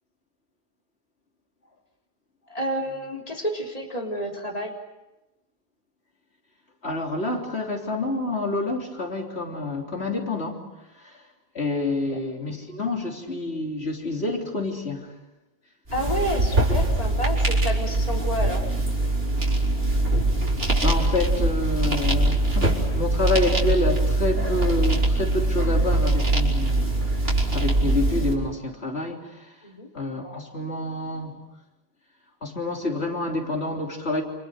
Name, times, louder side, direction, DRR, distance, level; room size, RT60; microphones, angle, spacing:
voice 1, 2.5-4.7 15.9-18.6 29.6-29.9, equal, 35° left, 0 dB, 3.8 m, -29 dB
voice 2, 6.8-10.6 11.0-11.2 11.5-15.1 20.8-27.2 27.5-29.6 29.9-31.4 32.4-34.2, left 2 dB, 80° left, 1 dB, 3.7 m, -28 dB
sound 1, 15.9-28.3, right 2 dB, 65° right, 4.7 m, -22 dB
29.0 x 27.5 x 6.5 m, 1.0 s
omnidirectional pair, 1.1 m